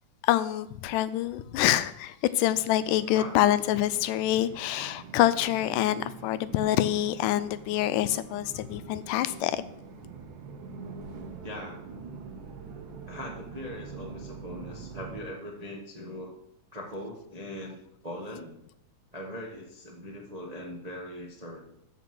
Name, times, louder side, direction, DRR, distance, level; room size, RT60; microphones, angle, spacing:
voice 1, 0.2-9.6, left 13 dB, 90° left, 14 dB, 2.1 m, -26 dB
sound 1, 2.4-15.2, right 4 dB, 75° right, 2.7 m, -44 dB
voice 2, 11.4-11.8 13.1-16.3 16.7-17.8 18.0-18.5 19.1-21.7, left 1 dB, 30° right, 0 dB, 0.6 m, -40 dB
13.5 x 5.5 x 6.1 m, 0.77 s
omnidirectional pair, 3.6 m